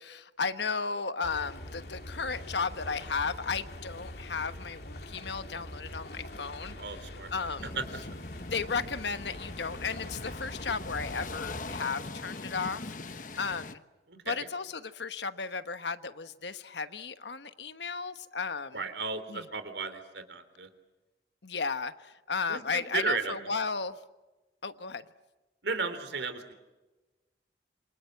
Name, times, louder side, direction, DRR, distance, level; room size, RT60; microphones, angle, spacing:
voice 1, 0.0-7.7 8.4-13.8 14.2-18.8 19.3-19.5 21.4-24.0 24.6-25.0, left 5 dB, 75° left, 1.2 m, -34 dB
sound 1, 1.2-11.8, left 1 dB, 60° left, 3.2 m, -44 dB
voice 2, 6.8-7.3 7.7-7.8 14.1-14.5 18.7-20.7 22.5-23.3 25.6-26.5, right 4 dB, 80° right, 3.2 m, -34 dB
sound 2, 7.6-13.8, left 3 dB, 45° left, 1.0 m, -42 dB
27.5 x 25.0 x 7.9 m
head